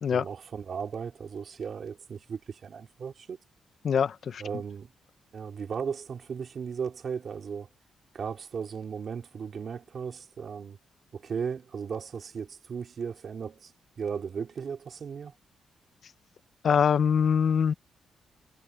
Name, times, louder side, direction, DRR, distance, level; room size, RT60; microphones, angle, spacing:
voice 1, 0.1-3.4 4.4-4.9 5.3-7.7 8.1-10.8 11.1-15.3, right 6 dB, 45° right, 3.4 m, -36 dB
voice 2, 3.8-4.4 16.6-17.7, left 7 dB, 50° left, 0.8 m, -23 dB
wide cardioid pair, 145°, 0 cm